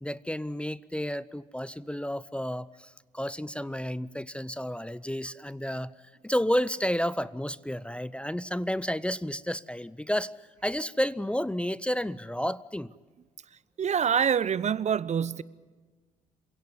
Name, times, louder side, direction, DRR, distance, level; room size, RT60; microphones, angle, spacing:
voice 1, 0.0-5.9 6.2-10.3 10.6-12.9, equal, 5° left, 0.7 m, -31 dB
voice 2, 13.8-15.4, right 7 dB, 40° right, 0.8 m, -26 dB
27.5 x 17.0 x 9.8 m
figure-of-eight pair, 45°, 18 cm